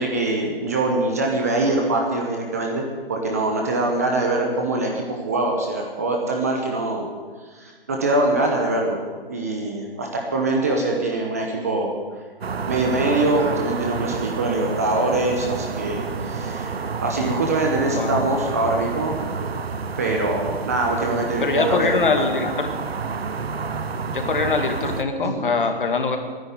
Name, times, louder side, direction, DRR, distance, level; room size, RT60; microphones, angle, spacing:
voice 1, 0.0-7.1 7.5-9.0 9.3-11.9 12.7-19.1 20.0-22.3 25.2-25.5, right 2 dB, 15° right, 1 dB, 0.9 m, -23 dB
sound 1, 12.4-25.0, right 5 dB, 90° right, 1.2 m, -29 dB
voice 2, 21.4-22.7 24.1-26.2, left 4 dB, 60° left, 5 dB, 2.3 m, -23 dB
12.0 x 10.5 x 9.5 m, 1.5 s
hypercardioid pair, 175°, 30 cm